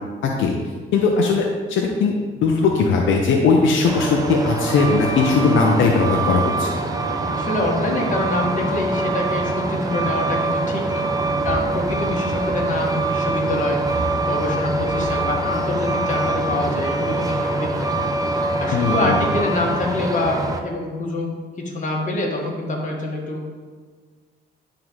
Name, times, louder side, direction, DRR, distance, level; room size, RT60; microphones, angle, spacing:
voice 1, 0.2-0.6 0.9-2.1 2.4-6.7 18.7-19.1, left 4 dB, 80° left, 1 dB, 0.7 m, -18 dB
Truck, 3.8-20.6, right 2 dB, 20° right, 0.7 m, -24 dB
voice 2, 7.3-11.0 11.4-18.0 18.4-23.4, left 2 dB, 40° left, -1 dB, 1.6 m, -26 dB
10.5 x 3.8 x 3.1 m, 1.5 s
cardioid pair, 90°, 20 cm